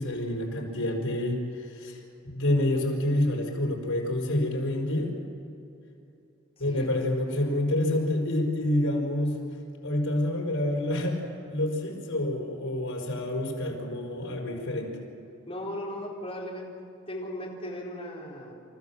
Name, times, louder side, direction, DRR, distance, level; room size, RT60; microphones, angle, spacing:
voice 1, 0.0-2.0 2.3-5.1 6.6-9.4 9.8-11.2 11.5-14.9, left 1 dB, 85° left, -1 dB, 5.1 m, -28 dB
voice 2, 6.6-7.0 15.5-16.7 17.1-18.5, left 1 dB, 30° left, -4 dB, 4.3 m, -37 dB
29.5 x 14.5 x 7.4 m, 2.7 s
head